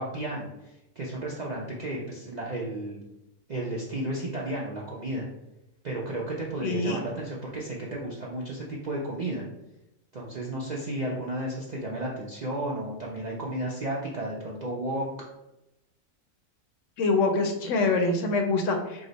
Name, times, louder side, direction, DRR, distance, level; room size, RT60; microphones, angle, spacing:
voice 1, 0.0-3.0 3.5-5.3 5.8-9.4 10.1-15.1, right 1 dB, 55° right, -4 dB, 0.4 m, -33 dB
voice 2, 6.6-7.0 17.0-19.1, left 3 dB, 70° left, 4 dB, 0.9 m, -25 dB
4.8 x 2.1 x 3.8 m, 0.91 s
omnidirectional pair, 1.4 m